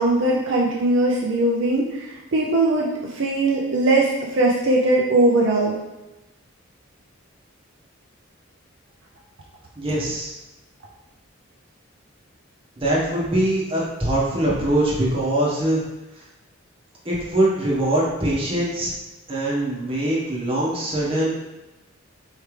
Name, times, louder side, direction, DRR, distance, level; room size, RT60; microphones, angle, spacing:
voice 1, 0.0-5.8, right 2 dB, 65° right, -2 dB, 0.5 m, -20 dB
voice 2, 9.8-10.3 12.8-15.8 16.1-16.2 17.0-18.9 19.3-21.4, right 1 dB, 25° right, -6 dB, 1.2 m, -22 dB
4.5 x 3.4 x 3.2 m, 1.0 s
head